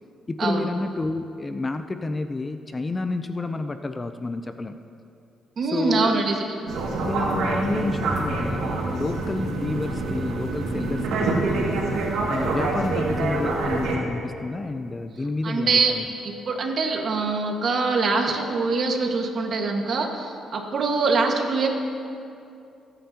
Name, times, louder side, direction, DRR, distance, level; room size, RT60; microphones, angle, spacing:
voice 1, 0.3-4.8 5.7-6.2 7.0-11.4 12.3-16.1, left 2 dB, 25° left, 9 dB, 0.5 m, -29 dB
voice 2, 5.6-6.4 15.4-15.9 16.2-21.7, right 4 dB, 55° right, 2 dB, 1.6 m, -24 dB
sound 1, 6.7-14.0, right 3 dB, 85° right, 2.2 m, -26 dB
21.5 x 9.0 x 2.9 m, 2.6 s
cardioid pair, 90°, 0 cm